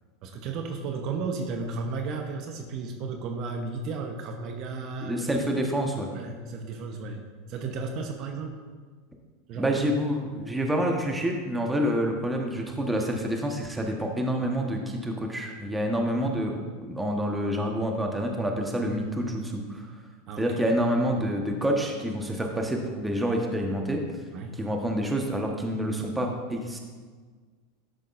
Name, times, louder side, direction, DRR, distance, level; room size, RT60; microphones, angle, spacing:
voice 1, 0.2-5.3 6.1-7.2 7.5-8.6 9.5-9.8 20.3-20.7 24.3-24.5, right 4 dB, 50° right, 3 dB, 0.9 m, -34 dB
voice 2, 5.0-6.1 9.6-19.8 20.4-24.0 24.5-26.8, equal, 10° right, 1 dB, 1.2 m, -28 dB
12.0 x 6.4 x 2.6 m, 1.5 s
hypercardioid pair, 100°, 0 cm